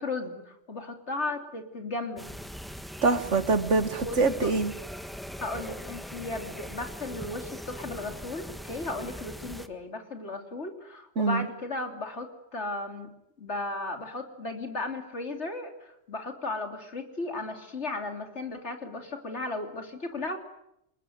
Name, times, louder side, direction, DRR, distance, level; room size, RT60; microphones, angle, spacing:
voice 1, 0.0-2.3 4.0-4.5 5.4-13.1 13.4-20.4, left 2 dB, 70° left, 5 dB, 3.7 m, -35 dB
sound 1, 2.2-9.7, equal, ahead, 1.4 m, -41 dB
voice 2, 3.0-4.7 11.2-11.5, right 3 dB, 85° right, 11 dB, 2.1 m, -24 dB
28.5 x 20.5 x 9.6 m, 0.81 s
omnidirectional pair, 1.2 m